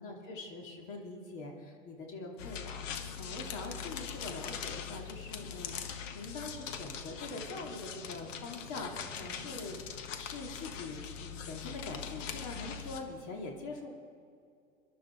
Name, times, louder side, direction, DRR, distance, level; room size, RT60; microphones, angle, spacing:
voice 1, 0.0-9.8 10.2-13.9, left 3 dB, 50° left, 0 dB, 2.6 m, -43 dB
sound 1, 2.4-13.0, left 7 dB, 75° left, 1.5 m, -42 dB
22.0 x 12.0 x 4.5 m, 2.4 s
hypercardioid pair, 95°, 38 cm